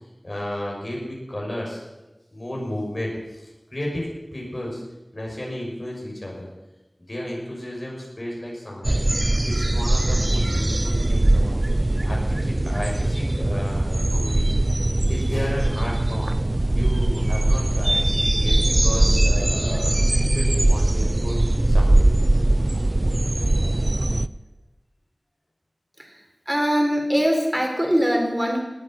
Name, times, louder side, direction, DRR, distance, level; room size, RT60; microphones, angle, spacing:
voice 1, 0.2-1.8 2.3-3.4 3.7-4.8 5.1-6.5 7.1-9.0 9.4-11.5 12.0-14.6 15.1-16.3 16.7-18.0 18.4-21.4 21.6-22.1, left 1 dB, 50° left, -3 dB, 6.3 m, -32 dB
sound 1, 8.8-24.3, right 1 dB, 45° right, 0.5 m, -20 dB
voice 2, 26.5-28.6, equal, 20° right, 2 dB, 4.0 m, -21 dB
19.0 x 8.5 x 7.6 m, 1.1 s
wide cardioid pair, 50°, 0 cm